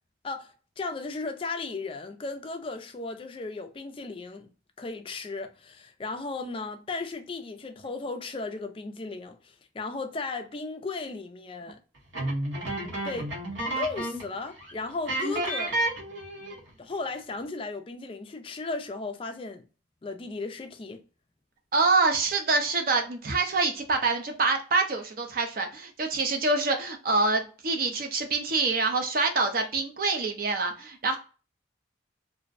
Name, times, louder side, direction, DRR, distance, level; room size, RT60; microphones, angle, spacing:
voice 1, 0.2-4.5 4.8-11.8 13.0-13.3 13.8-15.8 16.8-19.6 20.0-21.0, left 3 dB, 25° left, 0.3 m, -35 dB
sound 1, 12.1-14.3 14.6-14.7 15.1-16.7, right 1 dB, 80° right, 1.0 m, -31 dB
voice 2, 21.7-31.2, right 3 dB, 50° right, 0.5 m, -26 dB
2.5 x 2.0 x 2.4 m
head